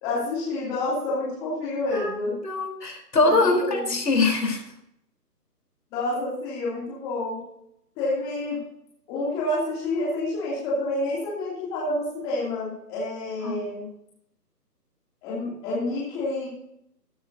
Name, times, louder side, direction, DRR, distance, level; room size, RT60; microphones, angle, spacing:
voice 1, 0.0-2.4 3.2-3.9 5.9-7.4 8.0-8.6 9.1-13.9 15.2-16.5, left 2 dB, 10° left, -7 dB, 2.7 m, -28 dB
voice 2, 2.4-4.6 13.4-13.6, left 2 dB, 80° left, 4 dB, 4.1 m, -23 dB
13.5 x 13.0 x 2.8 m, 0.74 s
hypercardioid pair, 170°, 48 cm